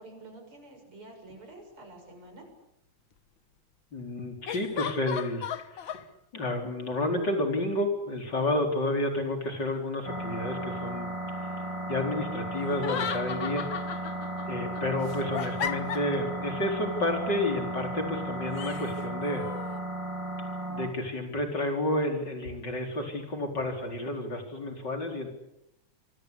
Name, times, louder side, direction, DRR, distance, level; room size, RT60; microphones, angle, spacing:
voice 1, 0.0-2.5, right 2 dB, 45° right, 4 dB, 7.6 m, -48 dB
sound 1, 1.3-1.4 4.5-6.0 12.7-14.5 14.7-16.3 18.5-19.8, left 8 dB, 55° left, 1.5 m, -36 dB
voice 2, 3.9-6.0 6.3-11.1 11.9-13.6 14.5-19.5 20.7-25.3, left 1 dB, 35° left, 4 dB, 4.9 m, -30 dB
sound 2, 10.0-20.9, right 1 dB, 10° right, 4.4 m, -35 dB
26.0 x 24.0 x 8.5 m, 0.82 s
omnidirectional pair, 3.4 m